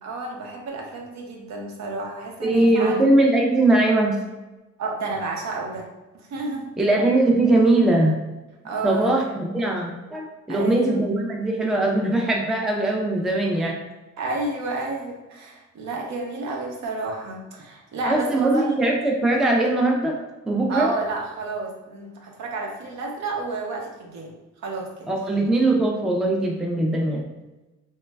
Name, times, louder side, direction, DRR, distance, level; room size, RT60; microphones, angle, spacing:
voice 1, 0.0-3.0 4.8-5.9 6.1-6.7 8.6-9.2 10.5-11.0 14.2-18.8 20.7-24.3 24.6-25.1, right 3 dB, 65° right, 0 dB, 0.7 m, -30 dB
voice 2, 2.4-4.2 6.8-8.2 8.8-13.8 18.1-20.2 20.5-20.9 25.1-27.2, right 2 dB, ahead, 0 dB, 0.3 m, -20 dB
3.0 x 2.2 x 2.2 m, 1.1 s
cardioid pair, 90°, 30 cm